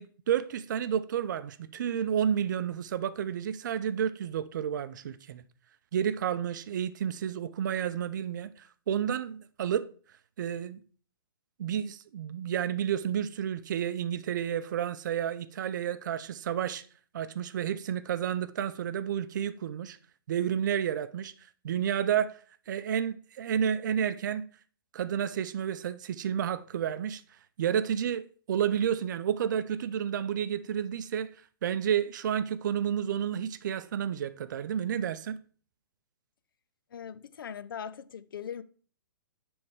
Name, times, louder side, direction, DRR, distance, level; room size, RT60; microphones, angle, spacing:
voice 1, 0.0-5.4 5.9-9.9 10.4-10.8 11.6-16.9 17.1-20.0 20.3-21.3 21.6-22.4 22.7-24.4 24.9-27.2 27.6-31.3 31.6-35.4, right 9 dB, 55° right, 0.5 m, -31 dB
voice 2, 36.9-38.6, left 8 dB, 65° left, 0.5 m, -40 dB
10.5 x 3.5 x 3.3 m
figure-of-eight pair, 120°, 12 cm